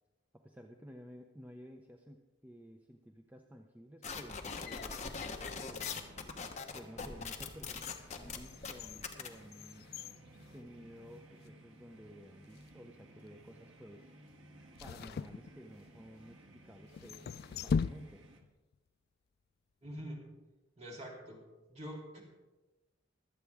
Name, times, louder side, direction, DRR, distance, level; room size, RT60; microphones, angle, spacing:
voice 1, 0.3-6.0 6.7-9.9 10.5-14.1 14.8-17.4 17.6-18.2, equal, 10° right, 3 dB, 0.6 m, -53 dB
sound 1, 4.0-9.3, left 5 dB, 35° left, 1.1 m, -42 dB
sound 2, 4.4-6.1 6.7-6.8 7.4-11.2 11.4-11.5 12.4-12.8 14.7-16.1 16.9-18.5 18.7-18.8, left 5 dB, 50° left, 0.3 m, -41 dB
sound 3, 5.4-18.4, right 1 dB, 85° right, 1.6 m, -58 dB
voice 2, 19.8-20.2 20.8-21.4 21.7-22.2, equal, 35° right, -3 dB, 3.3 m, -45 dB
24.0 x 8.3 x 3.5 m, 1.1 s
head